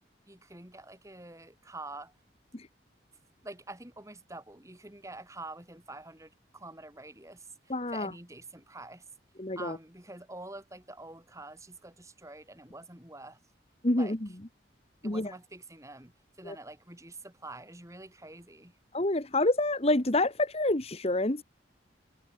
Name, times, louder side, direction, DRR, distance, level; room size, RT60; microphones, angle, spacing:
voice 1, 0.3-2.1 3.4-9.0 9.6-13.4 14.0-14.3 15.0-18.7, right 2 dB, 15° right, 5.3 m, -46 dB
voice 2, 7.7-8.1 9.4-9.8 13.8-14.2 15.0-15.3 16.5-16.6 18.9-21.4, left 2 dB, 35° left, 1.6 m, -27 dB
head